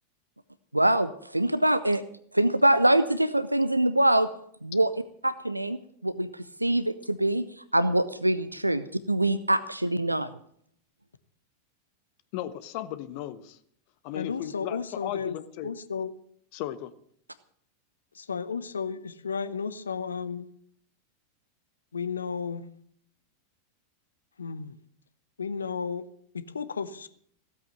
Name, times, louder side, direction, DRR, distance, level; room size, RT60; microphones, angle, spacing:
voice 1, 0.7-2.0 2.3-4.3 4.6-4.9 5.2-5.8 6.0-7.4 7.7-10.3, right 1 dB, 85° right, 14 dB, 0.5 m, -24 dB
voice 2, 12.3-13.6 14.0-15.7 16.5-16.9, left 13 dB, 45° left, 14 dB, 0.9 m, -36 dB
voice 3, 14.1-15.4 15.6-16.1 18.1-20.5 21.9-22.6 24.4-24.8 25.4-26.0 26.3-27.1, left 6 dB, 70° left, 14 dB, 0.8 m, -33 dB
15.5 x 8.5 x 7.7 m, 0.64 s
figure-of-eight pair, 90°, 0 cm